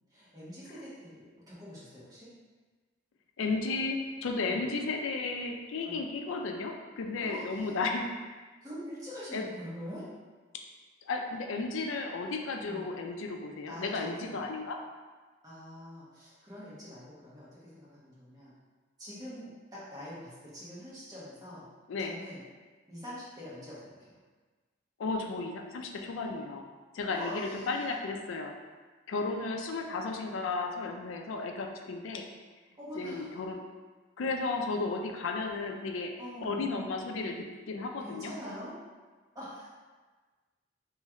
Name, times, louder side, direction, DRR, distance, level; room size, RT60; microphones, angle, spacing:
voice 1, 0.1-2.3 4.4-4.7 5.8-6.0 7.2-7.8 8.6-10.1 12.6-12.9 13.7-14.4 15.4-18.5 19.0-21.7 22.0-22.4 22.9-24.2 27.0-27.8 32.8-33.4 36.2-36.6 38.0-38.7 39.3-39.7, equal, 20° right, -9 dB, 1.1 m, -44 dB
voice 2, 3.4-8.0 9.3-9.5 10.5-10.6 11.1-14.8 21.9-22.1 25.0-26.6 26.9-28.5 29.1-32.2 33.0-33.6 34.2-36.2 36.4-38.3, left 3 dB, 75° left, 3 dB, 0.4 m, -34 dB
3.1 x 3.1 x 3.6 m, 1.4 s
head